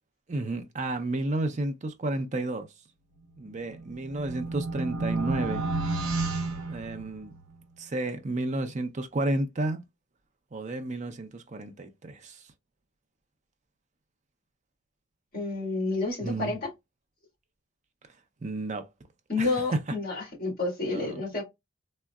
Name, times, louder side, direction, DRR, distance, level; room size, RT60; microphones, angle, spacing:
voice 1, 0.3-2.7 3.4-5.6 6.7-7.3 7.8-9.8 10.5-12.5 16.2-16.6 18.4-18.9 19.4-19.8 20.9-21.1, right 2 dB, 35° right, 0.5 m, -31 dB
Metallic transition, 3.7-7.5, right 2 dB, 70° right, 0.7 m, -31 dB
voice 2, 15.3-16.7 19.3-21.4, left 3 dB, 40° left, 1.8 m, -30 dB
3.6 x 2.1 x 2.2 m
head